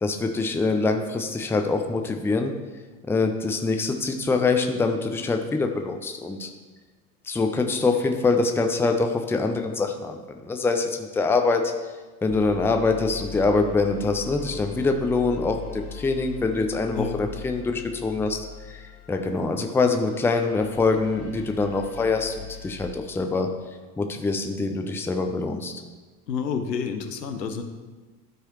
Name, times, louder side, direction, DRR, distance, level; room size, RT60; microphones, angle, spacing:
voice 1, 0.0-2.5 3.1-6.5 7.2-11.7 12.2-18.4 18.7-23.5 24.0-25.7, left 3 dB, 5° left, 5 dB, 0.5 m, -24 dB
sound 1, 12.3-22.9, left 8 dB, 65° left, 1.4 m, -41 dB
voice 2, 26.3-27.6, left 6 dB, 85° left, 6 dB, 0.8 m, -29 dB
12.5 x 4.8 x 3.1 m, 1.3 s
figure-of-eight pair, 75°, 49 cm